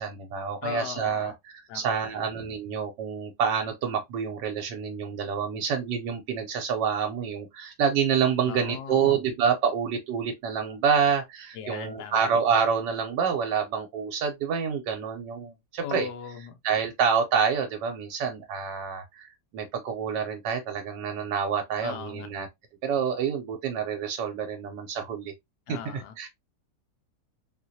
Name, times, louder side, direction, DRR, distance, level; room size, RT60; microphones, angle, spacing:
voice 1, 0.0-1.3 1.7-16.1 16.6-22.5 22.8-25.3 25.7-26.3, right 7 dB, 85° right, 1.3 m, -27 dB
voice 2, 0.6-1.3 1.7-2.1 8.5-9.2 11.5-12.3 15.8-16.6 21.8-22.3 25.7-26.1, left 8 dB, 80° left, 1.2 m, -38 dB
3.8 x 2.5 x 2.6 m
omnidirectional pair, 1.9 m